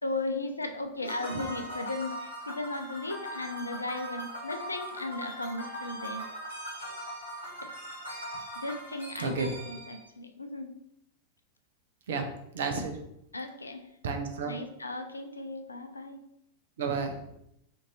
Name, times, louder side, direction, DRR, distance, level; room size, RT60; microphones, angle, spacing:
voice 1, 0.0-6.2 7.6-7.7 8.6-10.7 13.3-13.8 14.5-16.2, left 2 dB, 80° left, 5 dB, 0.3 m, -36 dB
sound 1, 1.0-10.0, right 1 dB, 85° right, 1.0 m, -40 dB
voice 2, 12.5-13.0 14.0-14.5 16.8-17.3, right 4 dB, 60° right, 5 dB, 0.5 m, -31 dB
2.5 x 2.5 x 3.0 m, 0.79 s
figure-of-eight pair, 90°, 0 cm